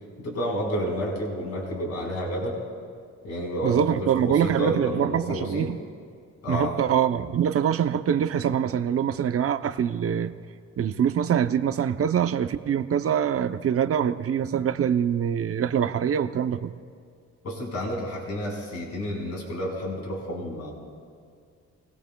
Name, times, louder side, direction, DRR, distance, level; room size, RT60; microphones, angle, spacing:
voice 1, 0.2-2.6 3.2-5.7 6.4-6.7 17.4-20.7, equal, 55° left, -1 dB, 4.8 m, -30 dB
voice 2, 3.6-5.8 6.5-10.3 10.8-16.7, right 8 dB, 50° right, 9 dB, 0.7 m, -24 dB
28.5 x 19.0 x 2.3 m, 2.2 s
cardioid pair, 90°, 30 cm